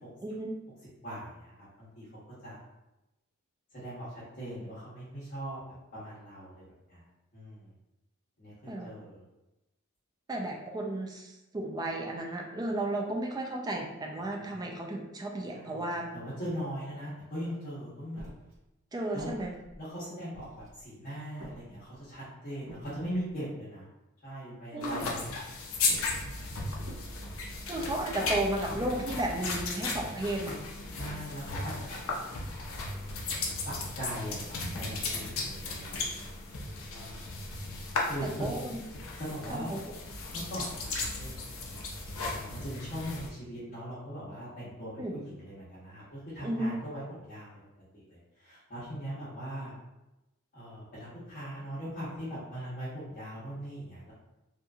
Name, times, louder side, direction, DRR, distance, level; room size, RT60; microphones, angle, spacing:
voice 1, 0.2-0.5 8.7-8.9 10.3-16.1 18.9-19.5 24.7-25.1 27.7-30.6 38.4-38.8 39.5-39.8 45.0-45.1 46.4-46.8, right 1 dB, 20° right, 1 dB, 0.3 m, -33 dB
voice 2, 1.0-2.1 2.4-2.6 3.7-6.6 6.9-7.7 8.4-9.2 14.2-14.4 15.5-15.9 16.1-18.2 19.1-19.3 19.8-23.9 24.2-25.4 26.0-26.7 30.9-32.4 32.6-32.7 33.2-36.3 36.9-37.3 38.0-38.6 39.2-39.8 40.3-41.6 42.3-47.6 47.9-49.7 50.5-54.1, equal, 40° left, -11 dB, 0.8 m, -40 dB
sound 1, 18.2-18.6 19.2-19.8 20.3-20.9 21.4-22.1 22.7-23.4 25.0-25.4 25.9-26.2 26.8-27.2 27.7-28.2 28.7-29.1, equal, 60° right, 0.9 m, -47 dB
sound 2, 24.8-43.3, left 3 dB, 65° left, 0.5 m, -36 dB
2.8 x 2.5 x 2.3 m, 0.96 s
head